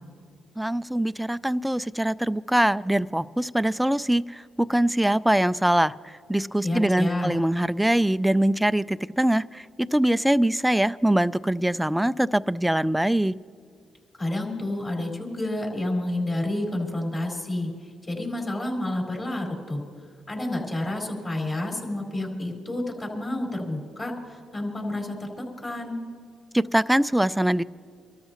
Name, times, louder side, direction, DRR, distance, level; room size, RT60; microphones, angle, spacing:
voice 1, 0.6-9.7 9.9-13.3 26.5-27.6, right 1 dB, 5° right, 15 dB, 0.3 m, -23 dB
voice 2, 6.6-7.3 14.2-19.8 20.3-26.0, left 1 dB, 30° left, 0 dB, 4.4 m, -29 dB
26.0 x 13.0 x 3.0 m, 2.1 s
cardioid pair, 90°, 0 cm